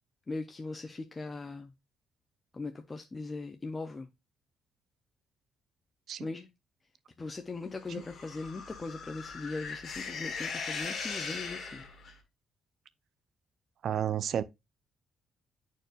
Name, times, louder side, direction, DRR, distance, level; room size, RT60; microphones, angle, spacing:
voice 1, 0.3-1.7 2.5-4.1 6.2-6.5 7.2-11.8, left 3 dB, 15° left, 0.4 m, -39 dB
sound 1, 7.9-12.2, left 5 dB, 40° left, 1.4 m, -39 dB
voice 2, 13.8-14.4, right 9 dB, 50° right, 0.4 m, -31 dB
10.5 x 4.5 x 2.4 m
cardioid pair, 175°, 0 cm